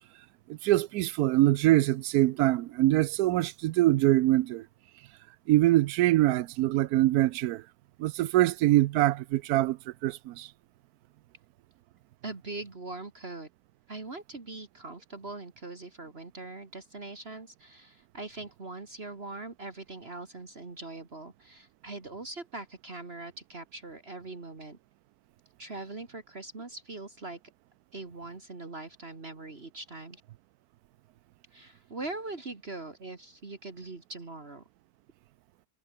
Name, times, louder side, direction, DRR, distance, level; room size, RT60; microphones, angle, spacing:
voice 1, 0.5-4.7 5.5-7.6 8.0-10.5, right 16 dB, 75° right, 1.0 m, -24 dB
voice 2, 12.2-13.5 13.9-24.8 25.6-27.4 27.9-30.2 31.5-34.7, right 2 dB, 40° right, 2.4 m, -42 dB
omnidirectional pair, 1.7 m